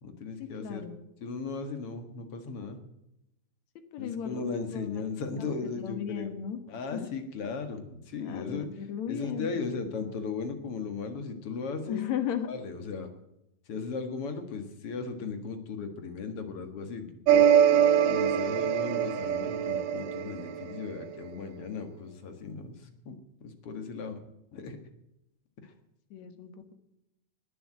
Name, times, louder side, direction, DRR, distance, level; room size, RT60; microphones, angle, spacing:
voice 1, 0.0-0.8 1.2-2.8 4.0-6.4 6.7-12.0 12.5-13.1 13.7-17.5 18.1-24.2 24.5-24.8 25.6-25.7, left 4 dB, 55° left, 7 dB, 2.5 m, -37 dB
voice 2, 0.6-1.0 3.9-4.4 4.7-5.0 5.4-6.6 6.9-7.1 8.2-9.5 11.9-12.5 26.1-26.5, left 9 dB, 70° left, 9 dB, 2.7 m, -35 dB
sound 1, 17.3-21.1, right 9 dB, 80° right, 2.2 m, -24 dB
19.5 x 7.0 x 7.7 m, 0.86 s
omnidirectional pair, 3.4 m